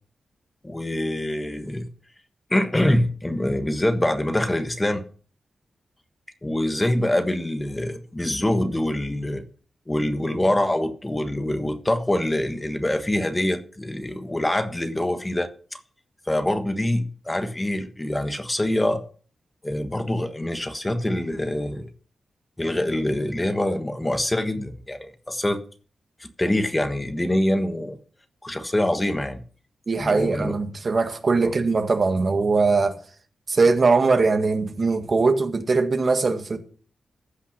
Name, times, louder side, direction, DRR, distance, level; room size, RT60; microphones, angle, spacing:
voice 1, 0.6-1.9 2.5-5.0 6.4-9.4 9.9-15.8 16.3-19.0 19.6-21.9 22.6-25.6 26.2-28.0 28.4-29.4 30.0-30.5 31.4-31.5, left 1 dB, 20° left, 1.4 m, -25 dB
voice 2, 29.9-32.9 33.5-36.6, right 4 dB, 50° right, 1.7 m, -21 dB
15.0 x 5.8 x 5.9 m
cardioid pair, 60°, 0 cm